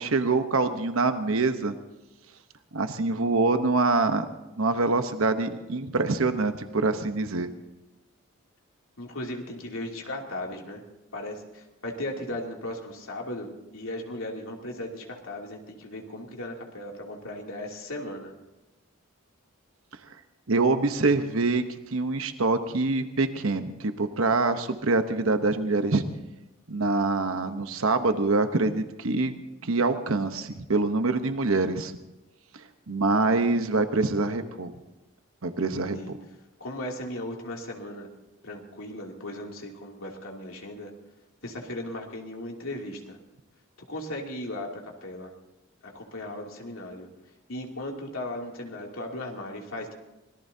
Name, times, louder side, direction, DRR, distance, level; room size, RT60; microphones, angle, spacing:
voice 1, 0.0-1.8 2.7-4.3 4.6-7.5 20.5-21.6 21.9-26.0 26.7-29.3 29.6-31.9 32.9-34.7 35.4-36.2, right 3 dB, 80° right, 8 dB, 1.0 m, -25 dB
voice 2, 9.0-10.8 11.1-18.3 35.7-36.1 36.6-38.1 38.4-40.9 41.4-43.2 43.9-45.3 45.8-47.1 47.5-49.9, left 1 dB, 75° left, 0 dB, 2.9 m, -37 dB
25.0 x 18.5 x 2.8 m, 1.0 s
head